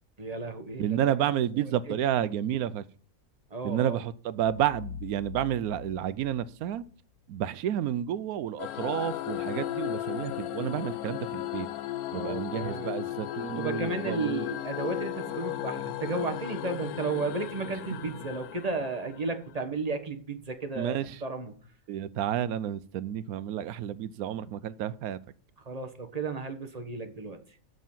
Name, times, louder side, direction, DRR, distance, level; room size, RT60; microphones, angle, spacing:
voice 1, 0.2-1.0 1.9-2.0 3.5-4.0 12.1-12.9 13.6-21.5 25.6-27.4, right 3 dB, 30° right, 1.3 m, -33 dB
voice 2, 0.8-2.8 3.6-6.8 7.3-11.7 12.1-14.4 20.8-21.2 21.9-25.2, right 10 dB, 85° right, 1.1 m, -30 dB
sound 1, 4.4-7.3, left 9 dB, 70° left, 1.7 m, -44 dB
sound 2, 8.6-19.5, left 14 dB, 90° left, 1.1 m, -35 dB
8.0 x 6.3 x 7.3 m
omnidirectional pair, 1.5 m